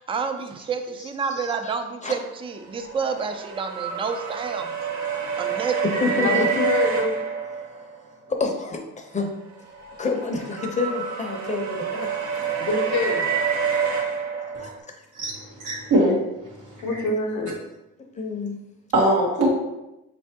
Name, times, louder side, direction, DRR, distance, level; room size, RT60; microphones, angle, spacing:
voice 1, 0.0-4.8 5.4-5.8, right 5 dB, 20° right, 6 dB, 0.4 m, -29 dB
voice 2, 1.0-1.7 2.0-2.2 5.8-6.5 8.4-9.3 10.0-12.7 14.5-15.0 18.1-18.6, left 4 dB, 25° left, 2 dB, 0.7 m, -29 dB
sound 1, 2.4-8.1 9.4-14.8, right 6 dB, 70° right, 0.8 m, -28 dB
voice 3, 6.2-7.1 12.6-13.3 16.8-17.6, left 3 dB, 75° left, 3 dB, 0.8 m, -25 dB
voice 4, 15.1-16.2 16.5-16.8 18.9-19.5, right 1 dB, 85° right, -4 dB, 1.5 m, -22 dB
4.2 x 3.3 x 2.8 m, 0.92 s
cardioid pair, 90°, 30 cm